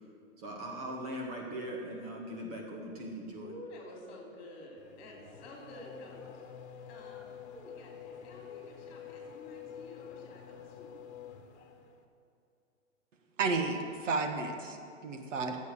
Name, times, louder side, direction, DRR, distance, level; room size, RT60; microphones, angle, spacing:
voice 1, 0.4-3.5, equal, 30° right, 1.5 m, -40 dB
voice 2, 3.4-6.4 6.9-10.9, left 1 dB, 30° left, 3.2 m, -50 dB
Race car auto racing / Accelerating revving vroom, 4.8-12.0, left 8 dB, 55° left, 1.3 m, -48 dB
voice 3, 13.4-15.6, right 4 dB, 65° right, 1.5 m, -32 dB
12.5 x 8.1 x 6.5 m
hypercardioid pair, 160°, 39 cm